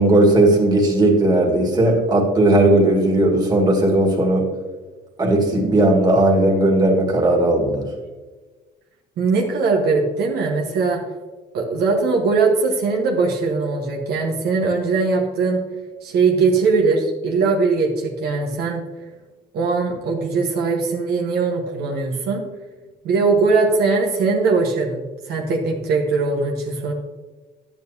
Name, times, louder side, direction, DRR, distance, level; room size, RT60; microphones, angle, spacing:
voice 1, 0.0-4.4 5.2-7.9, right 1 dB, 25° right, 0 dB, 2.2 m, -16 dB
voice 2, 9.2-11.0 11.5-15.6 16.0-18.8 19.5-22.4 23.0-25.0 25.3-26.9, right 4 dB, 70° right, 0 dB, 1.3 m, -20 dB
10.5 x 9.0 x 2.8 m, 1.3 s
cardioid pair, 110°, 17 cm